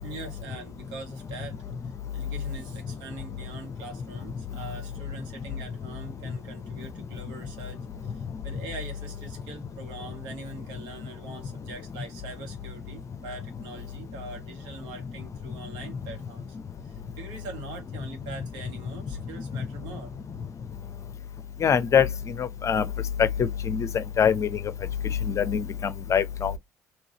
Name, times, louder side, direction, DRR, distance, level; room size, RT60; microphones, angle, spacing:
voice 1, 0.0-1.6 1.8-16.6 16.8-20.1, right 3 dB, 65° right, 1.5 m, -43 dB
voice 2, 21.6-22.1 22.4-22.9 23.8-23.9 24.2-24.5 25.3-26.6, left 7 dB, 40° left, 0.6 m, -23 dB
3.9 x 2.8 x 2.9 m
figure-of-eight pair, 50°, 8 cm